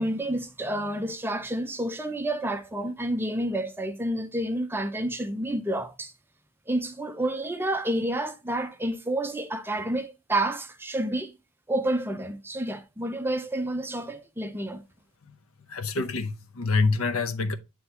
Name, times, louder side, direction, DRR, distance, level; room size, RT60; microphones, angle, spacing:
voice 1, 0.0-6.1 6.7-11.3 11.7-14.8, right 1 dB, 10° right, 0.5 m, -29 dB
voice 2, 15.7-17.5, left 3 dB, 70° left, 0.8 m, -26 dB
9.5 x 3.5 x 3.4 m
head